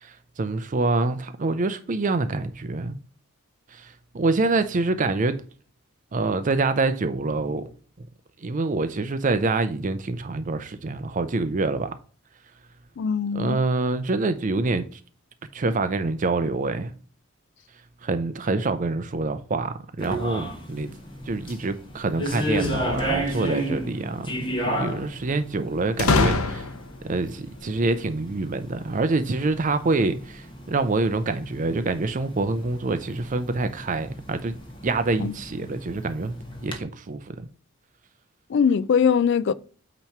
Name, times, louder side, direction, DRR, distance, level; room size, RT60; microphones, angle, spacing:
voice 1, 0.0-3.0 3.7-5.4 6.1-7.7 8.4-11.9 13.3-15.0 15.5-16.9 18.0-20.9 21.3-26.7 27.0-34.6 34.8-36.3 36.6-37.4, right 3 dB, 35° right, 0.5 m, -26 dB
voice 2, 13.0-13.6 35.2-35.3 38.5-39.5, left 6 dB, 55° left, 0.3 m, -21 dB
sound 1, 20.0-36.8, equal, 25° left, 1.3 m, -34 dB
sound 2, 22.5-23.5 26.0-27.0, left 3 dB, 85° left, 0.8 m, -24 dB
8.8 x 3.0 x 5.8 m
head